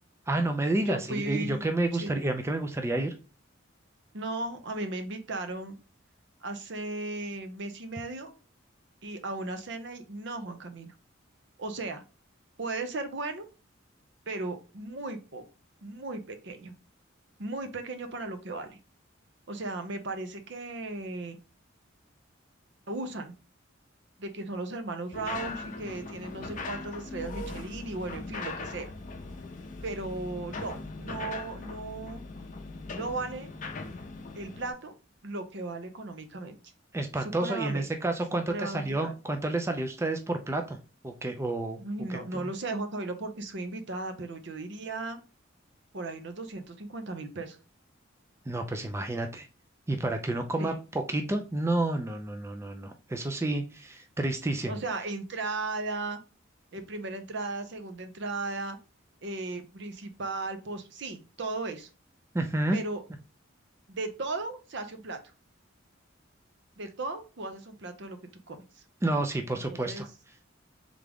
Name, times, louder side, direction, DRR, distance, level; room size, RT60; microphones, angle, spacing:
voice 1, 0.3-3.1 36.9-40.8 41.0-41.8 42.1-42.4 48.5-49.5 49.9-50.7 51.1-54.8 62.3-62.8 69.0-70.1, right 2 dB, 15° right, 5 dB, 0.4 m, -30 dB
voice 2, 0.8-2.2 4.1-5.8 6.4-8.4 9.0-10.9 11.6-12.0 12.6-13.5 14.3-15.4 15.8-16.7 17.4-18.8 19.5-21.4 22.9-23.3 24.2-28.9 29.8-32.2 32.9-33.5 34.3-34.9 35.2-36.6 37.2-37.9 38.5-39.1 41.8-45.2 45.9-47.6 50.6-50.8 54.7-56.2 56.7-58.8 59.2-61.9 62.7-63.0 63.9-65.2 66.8-68.2 68.5-68.8 69.7-70.1, right 2 dB, 60° right, 8 dB, 0.7 m, -36 dB
sound 1, 25.1-34.7, left 3 dB, 40° left, 0.6 m, -40 dB
3.7 x 3.5 x 3.4 m, 0.32 s
head